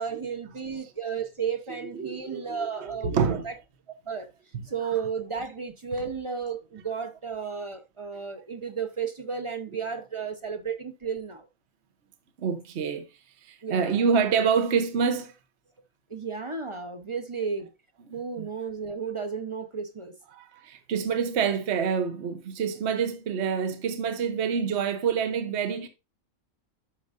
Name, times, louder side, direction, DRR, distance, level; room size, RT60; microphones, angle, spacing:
voice 1, 0.0-3.5 3.9-4.3 4.6-11.5 13.6-14.1 16.1-17.7 18.1-20.2, right 6 dB, 25° right, 0.9 m, -33 dB
voice 2, 1.9-3.4 12.4-13.1 13.4-15.3 18.4-18.5 20.3-25.9, right 6 dB, 55° right, 1.2 m, -27 dB
11.5 x 6.3 x 2.6 m
omnidirectional pair, 1.5 m